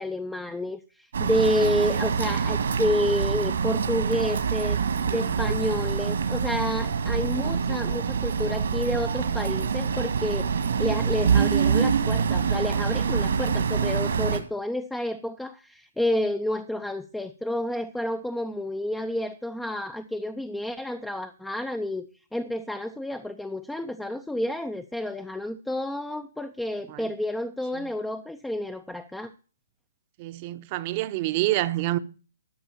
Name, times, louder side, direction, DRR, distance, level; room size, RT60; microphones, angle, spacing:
voice 1, 0.0-4.8 5.1-29.3, left 1 dB, 5° left, 0.5 m, -30 dB
sound 1, 1.1-14.4, right 6 dB, 75° right, 1.8 m, -25 dB
voice 2, 30.2-32.0, right 16 dB, 35° right, 0.7 m, -27 dB
12.5 x 5.4 x 6.9 m
hypercardioid pair, 150°, 0 cm